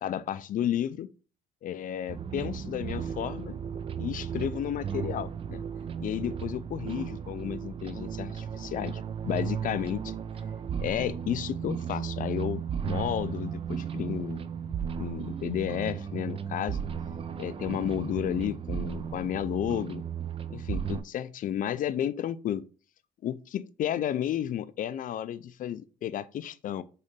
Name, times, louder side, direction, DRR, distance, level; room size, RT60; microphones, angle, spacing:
voice 1, 0.0-1.1 1.6-3.6 4.0-5.6 6.0-10.2 10.8-14.4 15.0-16.8 17.4-20.0 20.5-22.6 23.2-26.8, left 10 dB, 50° left, 0.5 m, -32 dB
sound 1, 2.1-21.0, right 7 dB, 35° right, 0.5 m, -35 dB
6.6 x 3.9 x 3.7 m
cardioid pair, 110°, 17 cm